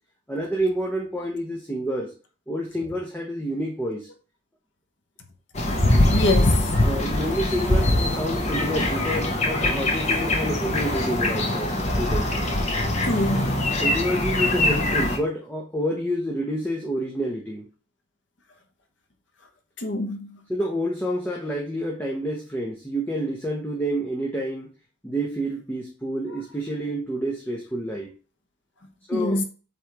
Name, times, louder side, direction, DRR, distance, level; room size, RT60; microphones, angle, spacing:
voice 1, 0.3-2.1 2.5-4.1 6.8-12.3 13.8-17.7 20.5-24.7 25.0-28.1 29.1-29.4, equal, 10° left, 1.0 m, -28 dB
sound 1, 5.5-15.2, left 1 dB, 35° left, 1.1 m, -23 dB
voice 2, 6.0-6.7 13.0-13.6 19.8-20.4 26.3-26.4 29.1-29.4, left 1 dB, 75° left, 1.1 m, -25 dB
7.7 x 3.6 x 3.5 m
head